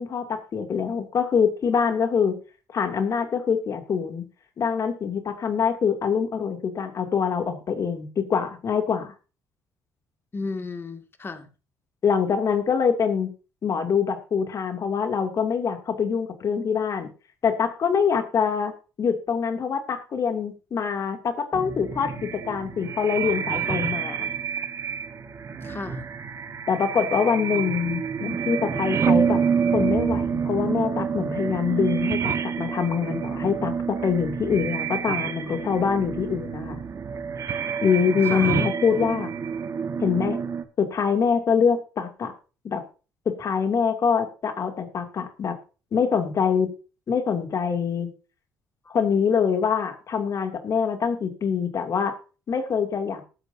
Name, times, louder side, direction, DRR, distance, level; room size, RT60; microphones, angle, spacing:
voice 1, 0.0-2.4 2.7-4.2 4.6-9.1 12.0-13.3 13.6-17.1 17.4-18.7 19.0-24.3 26.7-29.4 29.7-36.8 37.8-39.3 40.0-40.4 40.8-42.3 42.6-42.8 43.4-45.6 45.9-46.7 47.1-48.1 48.9-52.2 52.5-53.2, left 6 dB, 50° left, 2.7 m, -24 dB
voice 2, 10.3-11.5 25.6-26.0 35.5-35.6 38.2-38.6 48.9-49.0, left 3 dB, 30° left, 2.3 m, -34 dB
sound 1, 21.5-40.6, right 7 dB, 45° right, 1.5 m, -28 dB
19.5 x 9.2 x 2.8 m
hypercardioid pair, 55°, 7 cm